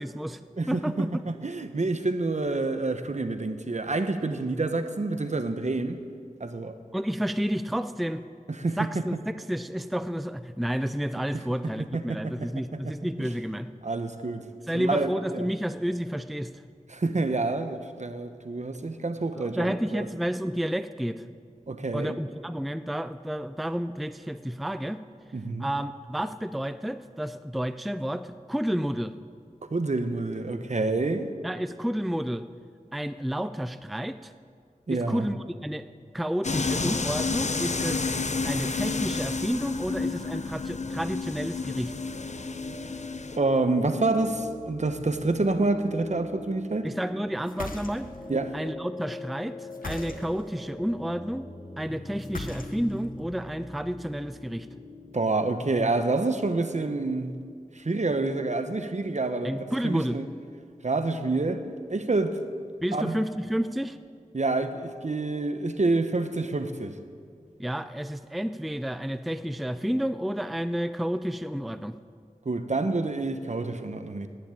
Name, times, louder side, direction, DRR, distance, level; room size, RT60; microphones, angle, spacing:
voice 1, 0.0-0.4 0.7-1.3 6.9-8.2 8.8-9.1 9.5-13.7 14.7-16.5 19.3-21.2 21.9-25.0 25.6-29.1 31.4-32.5 32.9-34.3 34.9-35.9 36.1-38.1 38.4-41.9 46.8-48.1 48.5-51.5 51.8-54.7 59.4-60.2 62.8-64.0 67.6-71.9, equal, ahead, 12 dB, 0.4 m, -30 dB
voice 2, 0.6-6.0 6.4-6.8 8.5-9.0 11.9-12.9 13.2-13.3 13.8-14.5 14.7-15.5 16.9-20.1 21.7-22.2 25.3-25.7 29.7-31.3 34.9-35.3 43.4-46.9 48.3-48.6 55.1-57.3 57.7-60.3 60.8-61.6 61.9-62.4 62.9-63.2 64.3-67.0 72.4-74.3, right 3 dB, 55° right, 9 dB, 1.0 m, -28 dB
sound 1, 36.4-43.4, left 4 dB, 55° left, 0.7 m, -30 dB
sound 2, 39.8-55.9, left 1 dB, 35° left, 1.3 m, -43 dB
sound 3, 47.4-48.3 49.7-50.5 52.2-53.1, left 2 dB, 80° left, 1.0 m, -38 dB
11.5 x 10.0 x 8.8 m, 2.1 s
wide cardioid pair, 50°, 14 cm